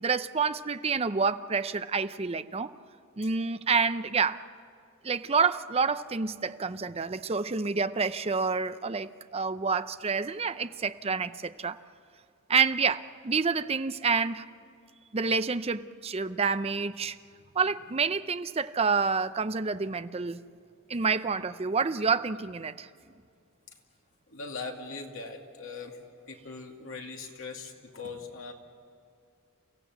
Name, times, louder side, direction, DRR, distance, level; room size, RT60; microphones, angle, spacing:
voice 1, 0.0-2.7 3.2-4.4 5.0-11.8 12.5-14.5 15.1-17.2 17.6-20.4 20.9-22.9, right 5 dB, 30° right, 12 dB, 0.5 m, -28 dB
voice 2, 24.3-26.0 26.3-28.5, left 4 dB, 70° left, 1 dB, 2.6 m, -40 dB
29.0 x 16.0 x 8.0 m, 2.3 s
head